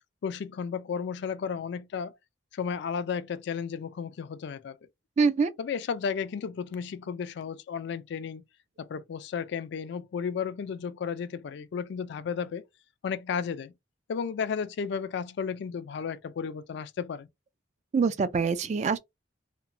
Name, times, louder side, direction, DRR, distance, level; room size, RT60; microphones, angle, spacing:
voice 1, 0.2-2.1 2.5-4.8 5.6-8.4 8.8-12.7 13.0-13.7 14.1-17.3, left 6 dB, 65° left, 0.3 m, -33 dB
voice 2, 5.2-5.5 17.9-19.0, right 5 dB, 40° right, 0.3 m, -24 dB
2.9 x 2.1 x 2.5 m
head